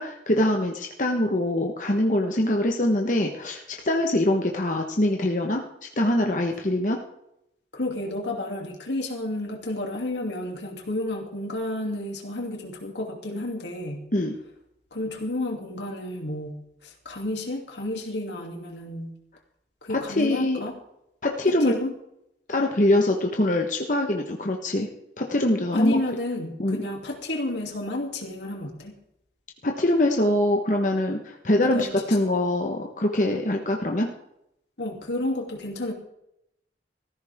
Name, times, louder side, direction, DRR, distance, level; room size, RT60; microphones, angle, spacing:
voice 1, 0.0-5.6 6.0-7.0 14.1-14.3 20.2-20.6 21.2-21.7 22.5-24.9 25.2-26.0 26.6-26.8 29.6-34.1, left 1 dB, 45° left, 2 dB, 1.3 m, -23 dB
voice 2, 7.7-14.1 14.9-19.1 19.8-20.7 21.5-21.9 25.7-28.9 31.7-32.2 34.8-35.9, left 1 dB, 80° left, 1 dB, 2.9 m, -31 dB
18.5 x 14.5 x 3.6 m, 0.80 s
head